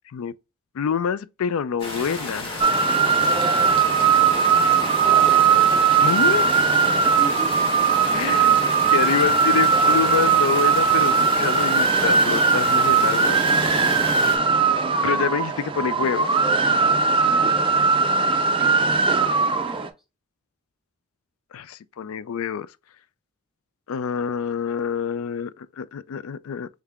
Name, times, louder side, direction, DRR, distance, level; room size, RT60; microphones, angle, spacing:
voice 1, 0.7-2.6 6.0-6.5 8.1-8.6 8.9-13.4 15.0-16.3 21.5-22.7 23.9-26.7, left 7 dB, 70° left, 0.4 m, -26 dB
sound 1, 1.8-14.4, left 2 dB, 25° left, 1.3 m, -32 dB
sound 2, 2.6-19.9, right 5 dB, 25° right, 0.4 m, -19 dB
voice 2, 5.0-5.4 5.7-5.9 6.8-7.6 8.3-8.9 17.3-17.6 18.6-18.7 19.5-19.9, equal, ahead, 0.8 m, -37 dB
3.6 x 3.3 x 3.5 m
head